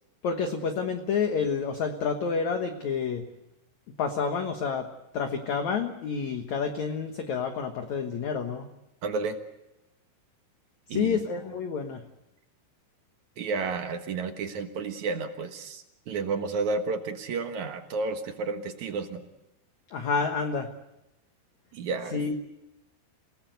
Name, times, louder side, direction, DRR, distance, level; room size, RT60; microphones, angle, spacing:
voice 1, 0.2-3.2 4.0-4.9 5.1-8.7 10.9-12.0 19.9-20.7 22.1-22.4, left 5 dB, 60° left, 5 dB, 2.2 m, -29 dB
voice 2, 9.0-9.4 10.9-11.2 13.4-19.2 21.7-22.2, right 4 dB, 60° right, 6 dB, 2.4 m, -31 dB
28.5 x 18.5 x 8.1 m, 0.92 s
omnidirectional pair, 4.7 m